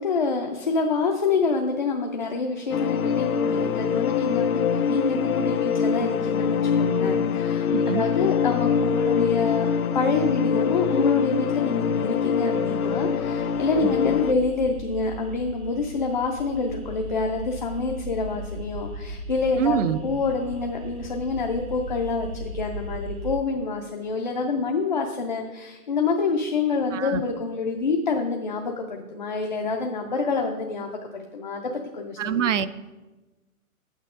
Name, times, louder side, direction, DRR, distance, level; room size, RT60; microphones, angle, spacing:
voice 1, 0.0-9.7 9.9-32.5, left 4 dB, 35° left, 2 dB, 0.5 m, -27 dB
sound 1, 2.7-14.3, left 7 dB, 80° left, 0.7 m, -24 dB
voice 2, 7.7-8.1 13.8-13.9 19.6-20.0 26.9-27.2 32.2-32.7, right 8 dB, 60° right, 15 dB, 0.5 m, -25 dB
sound 2, 11.6-23.4, right 1 dB, 90° right, 2.8 m, -38 dB
8.9 x 8.2 x 3.6 m, 1.2 s
hypercardioid pair, 170°, 43 cm